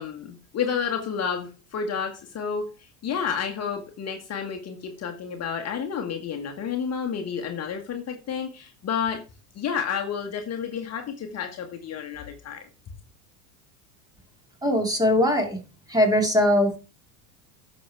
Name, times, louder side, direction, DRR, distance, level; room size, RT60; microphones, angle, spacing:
voice 1, 0.0-9.2 9.5-12.6, left 7 dB, 35° left, 4 dB, 1.5 m, -30 dB
voice 2, 14.6-15.6 15.9-16.8, left 1 dB, 10° right, 3 dB, 2.7 m, -21 dB
10.0 x 6.5 x 4.6 m, 0.33 s
supercardioid pair, 115°, 47 cm